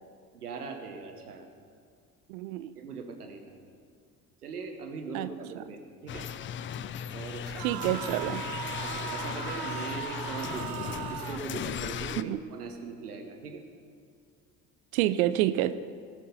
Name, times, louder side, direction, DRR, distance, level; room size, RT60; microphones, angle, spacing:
voice 1, 0.3-1.5 2.7-3.6 4.4-6.3 7.1-7.5 8.8-13.6, right 4 dB, 85° right, 5 dB, 1.2 m, -40 dB
voice 2, 2.3-2.7 5.1-5.3 7.6-8.4 12.2-12.4 14.9-15.7, right 14 dB, 70° right, 13 dB, 0.6 m, -28 dB
sound 1, 6.1-12.2, left 9 dB, 30° left, 0.4 m, -37 dB
sound 2, 7.5-11.5, right 10 dB, 55° right, 1.0 m, -38 dB
18.5 x 6.4 x 5.5 m, 2.2 s
figure-of-eight pair, 55°, 45 cm